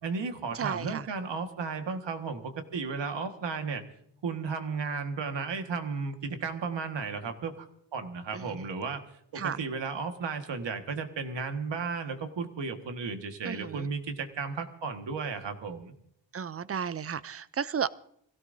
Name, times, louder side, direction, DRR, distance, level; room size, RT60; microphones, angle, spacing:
voice 1, 0.0-3.8 4.2-7.7 7.9-9.0 9.3-15.9, right 5 dB, 70° right, 6 dB, 1.7 m, -34 dB
voice 2, 0.5-1.1 8.3-8.6 9.4-9.6 13.4-13.9 16.3-17.9, right 7 dB, 35° right, 17 dB, 0.5 m, -33 dB
25.5 x 16.5 x 2.7 m, 0.71 s
wide cardioid pair, 130°, 45 cm